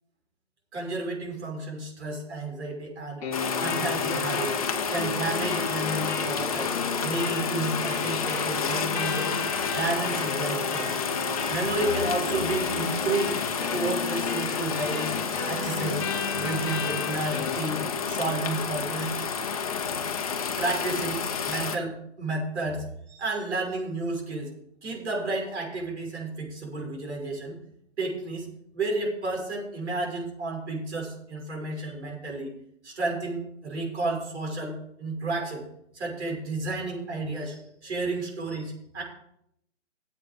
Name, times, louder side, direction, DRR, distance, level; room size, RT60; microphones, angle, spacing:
voice 1, 0.7-3.2 3.6-4.6 4.9-6.7 7.0-10.9 11.5-13.4 13.6-15.1 15.5-16.0 16.3-19.1 20.6-21.2 21.4-24.5 24.8-27.6 28.0-28.5 28.7-32.5 32.8-35.6 35.9-39.0, right 2 dB, 65° right, 0 dB, 6.1 m, -31 dB
sound 1, 3.2-18.2, left 4 dB, 10° left, 1.2 m, -34 dB
sound 2, 3.3-21.8, left 6 dB, 30° left, 0.9 m, -30 dB
14.0 x 8.3 x 5.2 m, 0.74 s
hypercardioid pair, 170°, 36 cm